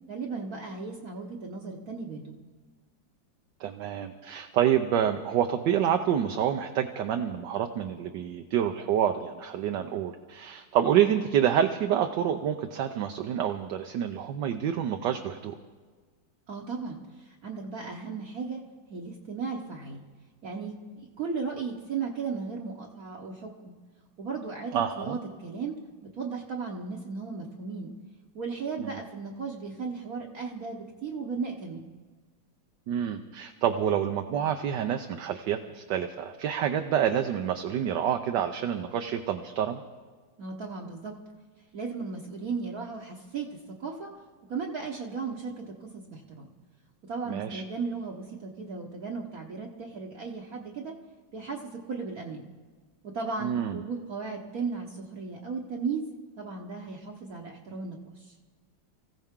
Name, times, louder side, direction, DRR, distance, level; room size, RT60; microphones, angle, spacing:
voice 1, 0.1-2.4 16.5-18.6 18.9-20.0 20.4-23.7 24.2-27.9 28.3-31.9 40.4-41.1 41.7-44.1 44.5-46.5 47.0-51.0 51.3-52.5 53.0-56.1 56.4-58.3, right 4 dB, 55° right, -1 dB, 1.4 m, -36 dB
voice 2, 3.6-15.5 24.7-25.2 28.8-29.0 32.9-39.8 47.3-47.6 53.4-53.8, right 9 dB, 70° right, 6 dB, 1.3 m, -28 dB
24.5 x 15.0 x 3.7 m, 1.4 s
omnidirectional pair, 2.1 m